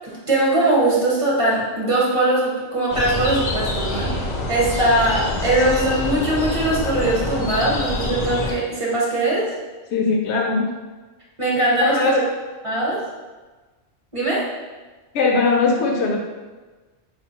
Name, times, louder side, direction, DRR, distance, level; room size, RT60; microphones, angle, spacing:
voice 1, 0.0-4.1 4.5-9.5 11.4-12.2 12.6-13.0 14.1-14.5, right 1 dB, 30° right, -5 dB, 0.9 m, -20 dB
sound 1, 2.9-8.5, left 2 dB, 50° left, 0.6 m, -26 dB
voice 2, 9.9-10.7 11.8-12.2 15.1-16.2, left 4 dB, 75° left, 1 dB, 0.9 m, -19 dB
4.8 x 2.5 x 2.8 m, 1.3 s
omnidirectional pair, 1.2 m